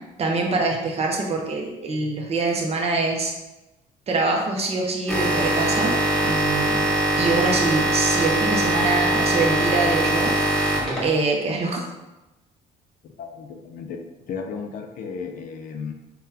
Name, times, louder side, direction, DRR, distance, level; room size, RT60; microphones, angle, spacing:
voice 1, 0.2-3.3 4.1-10.4 11.0-11.8, right 3 dB, 40° right, 1 dB, 0.6 m, -24 dB
sound 1, 5.1-11.3, right 1 dB, 5° left, 1.0 m, -22 dB
voice 2, 13.0-15.9, left 5 dB, 55° left, 5 dB, 0.4 m, -34 dB
3.7 x 2.2 x 2.7 m, 1.0 s
cardioid pair, 110°, 17 cm